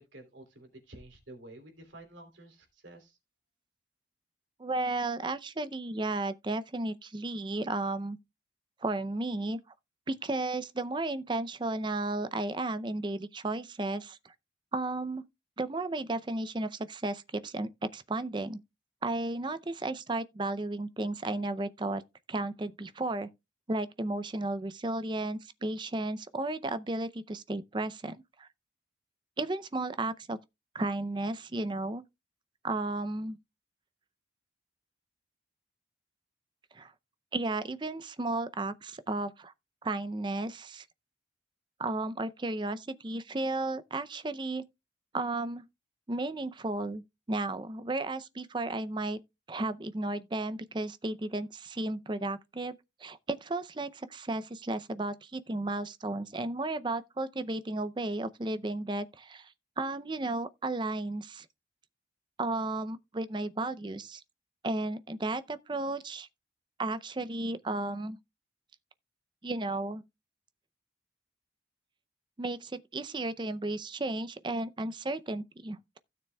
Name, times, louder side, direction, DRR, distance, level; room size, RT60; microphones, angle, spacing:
voice 1, 0.0-3.2, right 1 dB, 85° right, 3.0 m, -51 dB
voice 2, 4.6-8.2 8.8-9.6 10.1-14.2 14.7-15.2 15.6-18.6 19.0-22.0 22.3-23.3 23.7-28.5 29.4-30.4 30.7-32.0 32.6-33.4 36.7-36.9 37.3-39.5 39.8-40.9 41.8-44.6 45.1-45.6 46.1-47.0 47.3-49.2 49.5-59.5 59.8-61.5 62.4-64.2 64.6-66.3 66.8-68.2 69.4-70.0 72.4-76.0, right 2 dB, 25° right, 0.5 m, -34 dB
15.5 x 6.8 x 2.3 m
head